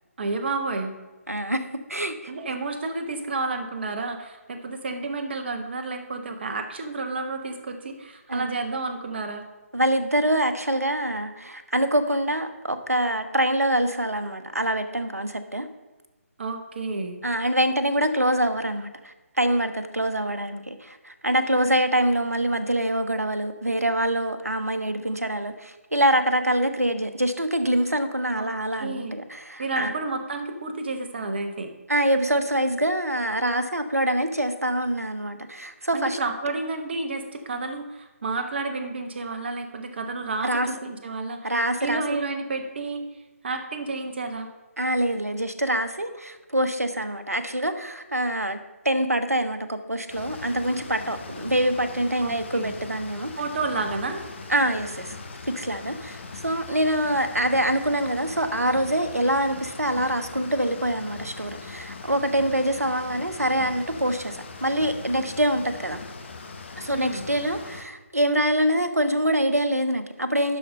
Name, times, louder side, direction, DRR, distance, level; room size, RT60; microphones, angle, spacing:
voice 1, 0.2-0.9 2.3-9.4 16.4-17.2 28.3-28.5 28.8-29.1 29.6-31.7 35.9-41.5 41.8-43.0 43.4-44.5 52.2-52.7 53.4-54.2 66.9-67.2, right 3 dB, 45° right, 5 dB, 1.3 m, -30 dB
voice 2, 1.3-2.3 8.3-8.5 9.7-15.7 17.2-30.0 31.9-36.2 40.4-40.7 41.4-42.2 44.8-48.6 48.8-53.3 54.5-55.2 55.5-66.0 66.8-70.6, right 1 dB, 90° right, 9 dB, 0.9 m, -25 dB
sound 1, 50.1-67.8, left 4 dB, 50° left, 1.3 m, -40 dB
11.5 x 4.3 x 5.3 m, 1.2 s
figure-of-eight pair, 145°, 8 cm